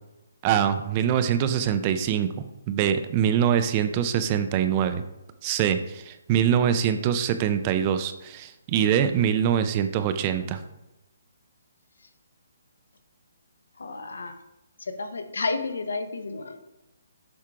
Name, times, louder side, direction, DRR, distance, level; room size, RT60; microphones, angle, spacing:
voice 1, 0.4-2.3 2.7-5.0 5.4-10.6, right 9 dB, 20° right, 9 dB, 0.3 m, -24 dB
voice 2, 13.8-14.4 14.8-16.6, left 3 dB, 85° left, 8 dB, 0.9 m, -31 dB
7.3 x 4.8 x 3.7 m, 0.98 s
hypercardioid pair, 175°, 0 cm